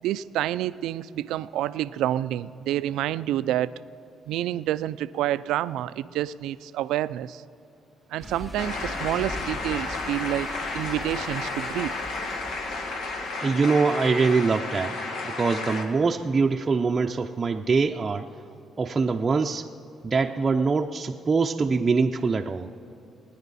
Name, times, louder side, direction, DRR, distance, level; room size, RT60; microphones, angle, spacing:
voice 1, 0.0-3.7 4.3-7.4 8.1-11.9, right 13 dB, 90° right, 15 dB, 0.3 m, -28 dB
sound 1, 8.2-13.4, equal, 20° left, 1.8 m, -41 dB
sound 2, 8.6-15.8, left 3 dB, 80° left, 1.7 m, -32 dB
voice 2, 13.4-14.9 15.3-18.3 18.8-19.7 20.0-22.7, right 4 dB, 35° right, 2 dB, 0.5 m, -23 dB
28.0 x 10.0 x 4.1 m, 2.6 s
cardioid pair, 90°, 0 cm